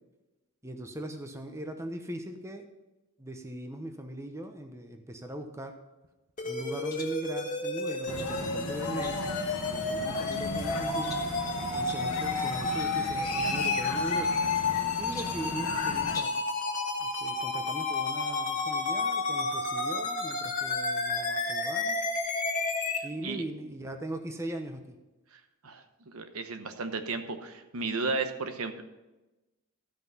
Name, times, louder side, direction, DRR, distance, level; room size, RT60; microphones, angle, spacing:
voice 1, 0.6-2.7 3.2-5.7 6.5-11.2 11.7-14.4 15.0-16.4 17.0-22.0 23.0-24.9, right 1 dB, 15° right, 5 dB, 0.7 m, -40 dB
sound 1, 6.4-23.0, left 3 dB, 35° left, 1.8 m, -31 dB
sound 2, 6.9-7.2 7.9-8.4 9.0-9.4 9.9-10.5 11.0-11.4 11.9-12.1 12.8-13.0 13.2-13.3 14.2-14.8 15.1-15.5 16.1-16.5, left 3 dB, 15° left, 1.2 m, -45 dB
sound 3, 8.1-16.2, left 3 dB, 80° left, 1.5 m, -36 dB
voice 2, 25.3-28.8, right 3 dB, 70° right, 8 dB, 1.0 m, -34 dB
13.0 x 5.9 x 5.5 m, 1.0 s
head